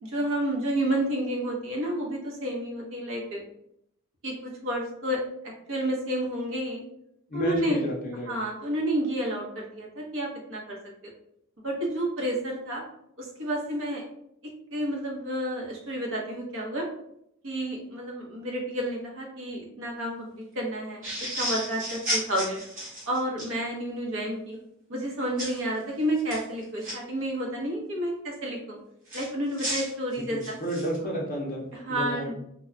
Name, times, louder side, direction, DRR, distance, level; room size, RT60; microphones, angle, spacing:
voice 1, 0.0-3.4 4.2-5.2 5.7-6.8 7.3-7.8 8.3-10.8 11.0-11.1 11.6-12.8 13.2-14.0 14.7-16.9 17.4-21.0 21.4-22.6 23.1-24.6 24.9-28.8 29.1-30.5 31.7-32.3, right 1 dB, 60° right, -2 dB, 0.8 m, -30 dB
voice 2, 7.3-8.3 30.3-32.3, equal, 40° left, -1 dB, 0.5 m, -31 dB
sound 1, 21.0-23.5 25.4-25.6 26.2-26.9 29.1-31.0, right 1 dB, 35° right, 1.0 m, -33 dB
2.2 x 2.1 x 3.7 m, 0.75 s
head